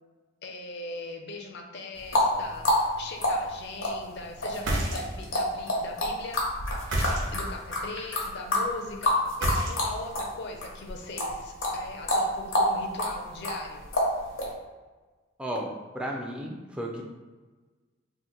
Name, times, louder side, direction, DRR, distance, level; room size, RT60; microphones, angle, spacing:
voice 1, 0.4-6.4 7.3-13.9, left 2 dB, 60° left, 2 dB, 0.5 m, -40 dB
sound 1, 1.9-10.3 10.6-14.5, left 1 dB, 85° left, 0.9 m, -27 dB
sound 2, 4.5-5.4 6.8-7.6 9.3-10.1, right 1 dB, 70° right, 0.7 m, -29 dB
voice 2, 15.4-17.0, equal, 5° right, -1 dB, 0.3 m, -34 dB
2.8 x 2.5 x 3.8 m, 1.3 s
head